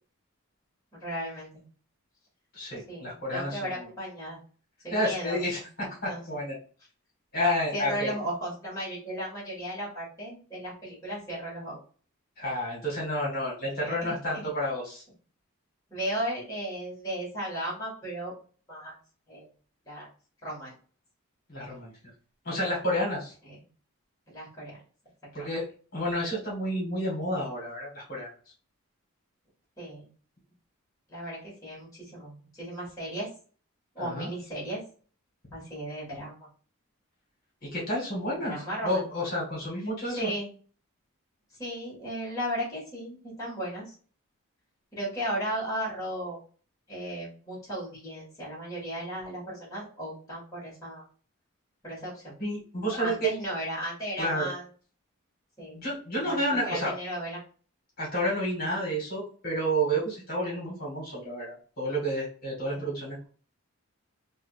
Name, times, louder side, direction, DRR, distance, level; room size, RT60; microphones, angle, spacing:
voice 1, 0.9-1.6 2.9-4.4 4.8-5.4 6.1-6.2 7.3-11.8 13.8-14.5 15.9-18.3 18.7-19.0 19.3-19.5 19.9-20.1 20.4-20.7 23.4-23.6 24.3-24.8 25.4-25.5 29.8-30.1 31.1-33.3 33.9-34.8 35.5-36.3 38.3-39.0 40.2-40.5 41.6-44.0 44.9-46.4 46.9-51.0 51.8-52.3 53.0-54.7 55.6-55.8 56.2-57.4 62.7-63.1, right 1 dB, 15° left, -8 dB, 1.7 m, -35 dB
voice 2, 2.5-3.6 4.9-6.5 7.3-8.1 12.4-15.0 21.5-21.9 22.5-23.3 25.3-25.6 25.9-28.3 34.0-34.3 37.7-38.6 38.8-40.3 52.4-53.3 54.2-54.5 55.7-56.9 58.0-63.2, equal, 45° left, -5 dB, 1.7 m, -30 dB
3.4 x 2.5 x 3.2 m, 0.40 s
head